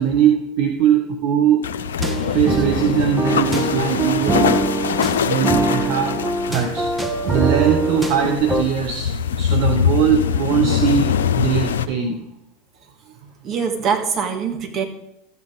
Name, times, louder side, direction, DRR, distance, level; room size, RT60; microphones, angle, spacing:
voice 1, 0.0-1.6 2.3-4.6 5.2-6.2 6.5-6.9 7.2-9.1 9.4-12.2, right 8 dB, 55° right, 4 dB, 1.0 m, -20 dB
sound 1, 1.6-11.9, left 8 dB, 75° left, 0.5 m, -23 dB
sound 2, 2.0-8.6, right 2 dB, 5° right, 1.4 m, -23 dB
voice 2, 13.4-14.8, right 6 dB, 40° right, 3 dB, 2.1 m, -23 dB
13.5 x 8.2 x 4.0 m, 0.83 s
figure-of-eight pair, 80°, 0 cm